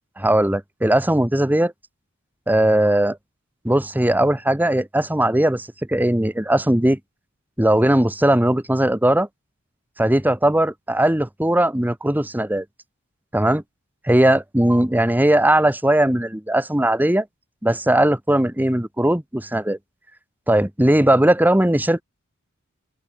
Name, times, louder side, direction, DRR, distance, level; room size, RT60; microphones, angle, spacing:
voice 1, 0.2-1.7 2.5-3.2 3.6-7.0 7.6-9.3 10.0-12.6 13.3-13.6 14.0-17.3 17.6-19.8 20.5-22.0, right 1 dB, 10° right, 1.0 m, -18 dB
open air
head